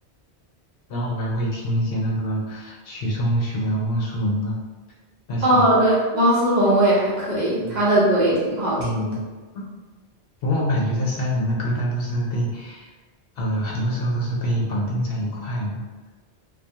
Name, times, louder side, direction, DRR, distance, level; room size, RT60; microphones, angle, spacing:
voice 1, 0.9-4.6 5.3-5.7 7.6-7.8 8.8-9.2 9.5-9.7 10.4-12.9 13.4-15.8, equal, 65° left, -3 dB, 0.7 m, -25 dB
voice 2, 5.4-9.1, right 1 dB, 50° right, -8 dB, 0.7 m, -19 dB
2.2 x 2.2 x 2.7 m, 1.3 s
omnidirectional pair, 1.1 m